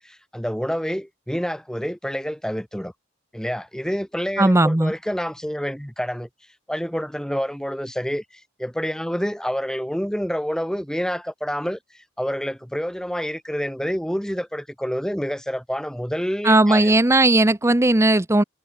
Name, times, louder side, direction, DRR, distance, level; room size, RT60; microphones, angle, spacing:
voice 1, 0.0-2.9 3.3-6.3 6.7-11.8 12.2-16.9, equal, 5° left, 2.6 m, -28 dB
voice 2, 4.4-4.9 16.4-18.4, right 2 dB, 15° right, 0.7 m, -17 dB
head